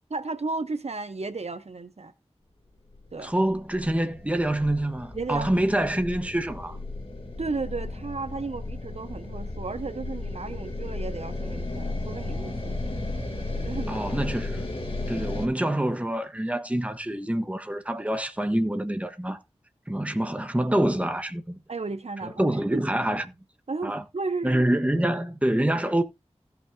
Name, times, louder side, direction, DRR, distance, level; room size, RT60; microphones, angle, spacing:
voice 1, 0.1-2.1 3.1-3.3 5.1-5.7 7.4-12.8 13.5-14.1 21.7-22.8 23.7-24.6, right 3 dB, 70° right, 0.9 m, -34 dB
sound 1, 2.9-15.5, left 2 dB, 50° left, 2.4 m, -34 dB
voice 2, 3.2-6.8 13.9-14.7 15.1-19.4 19.9-21.6 22.2-23.2 23.8-24.0 24.4-26.0, right 1 dB, 10° right, 1.2 m, -26 dB
16.0 x 6.0 x 2.7 m
wide cardioid pair, 60°, 11 cm